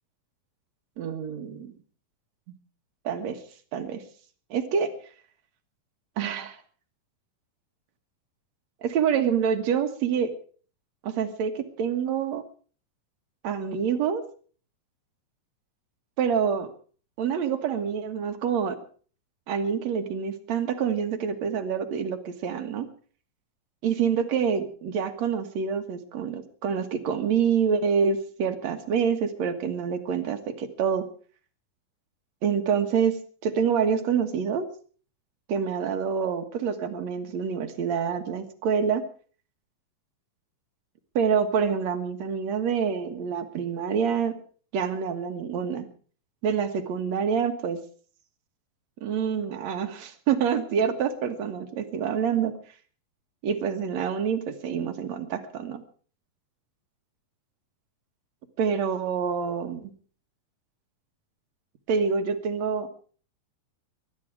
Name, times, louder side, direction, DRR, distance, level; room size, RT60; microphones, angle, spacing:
voice 1, 1.0-1.7 3.0-3.4 3.7-4.0 4.5-4.9 6.2-6.6 8.8-10.3 11.0-12.4 13.4-14.2 16.2-16.7 17.2-18.8 19.5-22.9 23.8-31.1 32.4-33.2 33.4-34.7 35.5-39.0 41.2-44.4 44.7-45.8 46.4-47.8 49.0-52.5 53.4-55.8 58.6-59.9 61.9-62.9, right 7 dB, 55° right, 8 dB, 2.5 m, -26 dB
21.0 x 12.5 x 4.8 m, 0.43 s
omnidirectional pair, 4.1 m